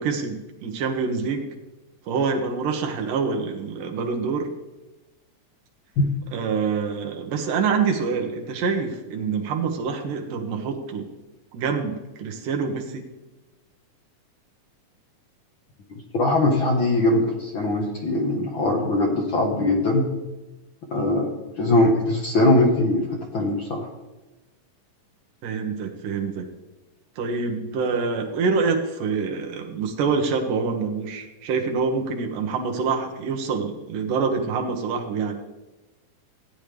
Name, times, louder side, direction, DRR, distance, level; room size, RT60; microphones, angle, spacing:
voice 1, 0.0-1.5 2.1-4.5 6.3-11.1 11.5-13.0 21.0-21.2 25.4-26.5 27.2-35.3, right 5 dB, 80° right, 3 dB, 2.9 m, -26 dB
voice 2, 16.1-20.1 20.9-23.9, left 2 dB, 55° left, 0 dB, 1.4 m, -21 dB
16.0 x 9.2 x 3.4 m, 1.1 s
omnidirectional pair, 3.8 m